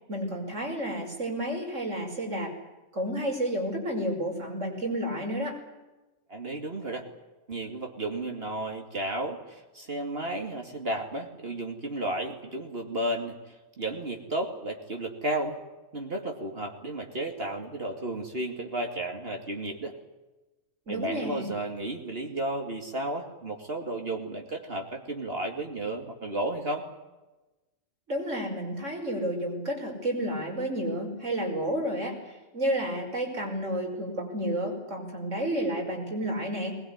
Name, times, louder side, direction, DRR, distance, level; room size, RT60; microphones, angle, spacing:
voice 1, 0.1-2.5 2.9-5.6 20.9-21.5 28.1-36.8, right 1 dB, 75° right, 2 dB, 5.8 m, -31 dB
voice 2, 6.3-7.1 7.5-13.4 13.8-15.6 15.9-20.0 20.9-26.9, right 1 dB, 50° right, 3 dB, 2.7 m, -33 dB
21.0 x 20.5 x 9.5 m, 1.1 s
omnidirectional pair, 1.3 m